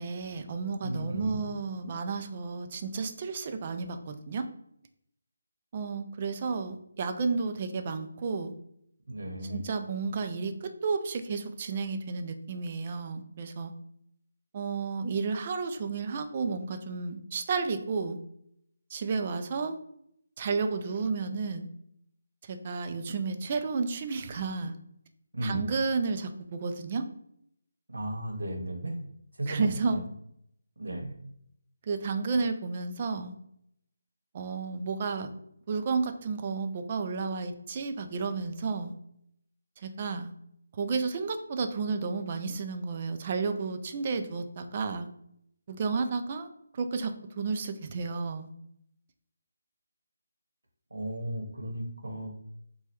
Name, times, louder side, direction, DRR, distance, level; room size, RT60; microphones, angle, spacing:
voice 1, 0.0-4.5 5.7-8.5 9.5-13.7 14.5-18.2 18.9-19.7 20.4-21.7 22.5-24.7 25.4-27.0 29.5-30.0 31.9-33.3 34.3-35.3 35.7-38.9 39.8-40.3 40.8-45.1 45.7-46.5 46.7-48.5, right 4 dB, 35° right, 7 dB, 0.3 m, -32 dB
voice 2, 0.8-1.4 9.1-9.6 25.3-25.6 27.9-29.0 29.4-30.0 30.8-31.1 50.9-52.4, right 1 dB, 80° right, 1 dB, 0.9 m, -35 dB
3.2 x 2.2 x 3.0 m, 0.72 s
figure-of-eight pair, 165°, 0 cm